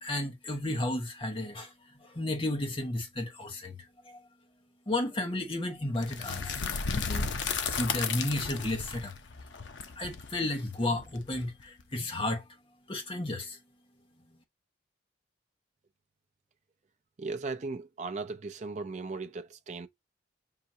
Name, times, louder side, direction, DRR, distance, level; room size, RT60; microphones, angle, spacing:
voice 1, 0.0-1.7 2.0-3.8 4.1-4.2 4.9-9.1 10.0-12.4 12.9-13.6, left 1 dB, 30° left, 1.0 m, -33 dB
sound 1, 6.0-11.8, left 5 dB, 85° left, 0.6 m, -34 dB
voice 2, 17.2-19.9, right 3 dB, 40° right, 0.5 m, -37 dB
5.7 x 2.6 x 2.7 m
head